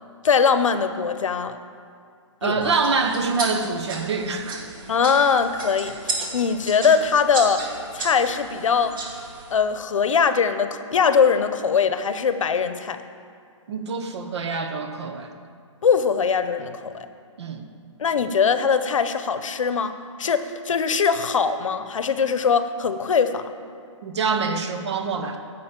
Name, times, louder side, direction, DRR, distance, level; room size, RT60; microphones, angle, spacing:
voice 1, 0.2-1.6 2.4-2.7 4.9-7.6 7.9-9.0 9.5-13.0 15.8-17.1 18.0-23.5, left 6 dB, 80° left, 11 dB, 0.8 m, -21 dB
voice 2, 2.4-4.6 13.7-15.3 17.4-17.6 24.0-25.4, right 4 dB, 60° right, 5 dB, 1.2 m, -25 dB
sound 1, 2.6-9.5, right 3 dB, 40° right, 2.0 m, -34 dB
9.6 x 6.3 x 7.5 m, 2.3 s
hypercardioid pair, 165°, 16 cm